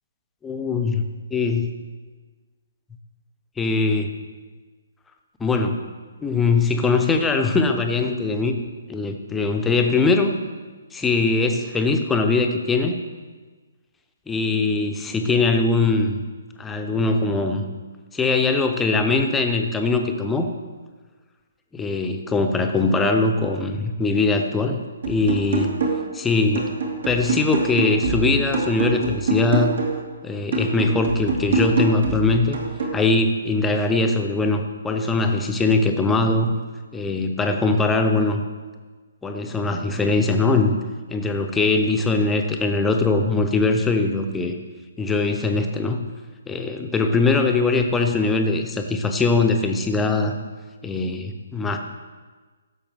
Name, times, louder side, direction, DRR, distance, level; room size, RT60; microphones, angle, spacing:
voice 1, 0.4-1.0 1.3-1.7 3.6-4.1 5.4-5.8 6.2-8.6 8.9-10.3 10.9-13.0 14.3-16.2 16.6-17.7 18.1-20.5 21.7-24.8 25.1-25.7 26.1-26.7 27.0-29.7 30.2-32.6 32.9-36.6 36.9-38.4 39.2-40.8 41.1-44.5 45.0-46.0 46.5-50.3 50.8-51.8, left 3 dB, 10° left, 5 dB, 0.9 m, -21 dB
sound 1, 25.0-26.2 26.6-30.1 30.5-33.0, right 3 dB, 55° right, 2.2 m, -25 dB
15.0 x 7.1 x 3.5 m, 1.4 s
figure-of-eight pair, 130°, 0 cm